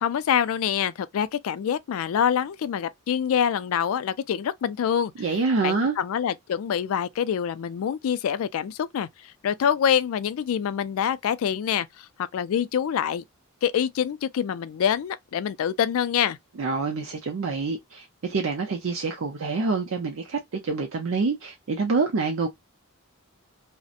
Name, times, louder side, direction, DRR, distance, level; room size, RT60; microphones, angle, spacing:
voice 1, 0.0-5.1 5.6-12.1 12.3-13.2 13.6-16.4, left 8 dB, 65° left, 0.3 m, -25 dB
voice 2, 5.2-6.0 16.6-22.5, right 4 dB, 60° right, 0.5 m, -26 dB
2.6 x 2.1 x 2.4 m
head